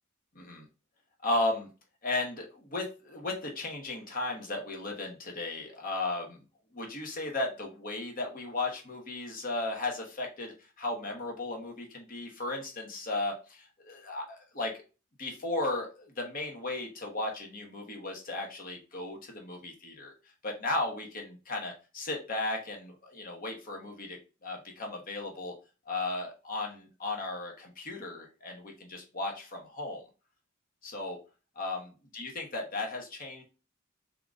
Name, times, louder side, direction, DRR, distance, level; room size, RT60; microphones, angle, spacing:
voice 1, 0.3-0.6 1.2-1.7 2.0-6.4 6.7-14.8 15.2-20.1 20.4-25.5 25.9-30.0 30.8-31.2 31.6-31.8 32.1-33.4, left 2 dB, 40° left, 1 dB, 1.1 m, -35 dB
3.8 x 2.8 x 3.6 m, 0.31 s
head